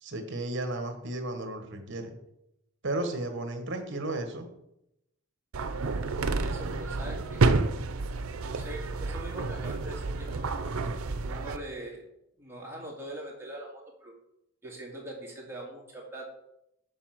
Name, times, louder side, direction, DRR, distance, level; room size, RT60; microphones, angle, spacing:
voice 1, 0.0-2.1 2.8-4.5, right 2 dB, 60° right, 6 dB, 1.3 m, -34 dB
sound 1, 5.5-11.6, right 3 dB, 85° right, 0.6 m, -29 dB
voice 2, 6.2-7.4 8.4-10.6 11.1-12.0 12.4-14.1 14.6-16.3, right 1 dB, 10° right, -3 dB, 2.1 m, -42 dB
7.2 x 4.9 x 5.8 m, 0.84 s
head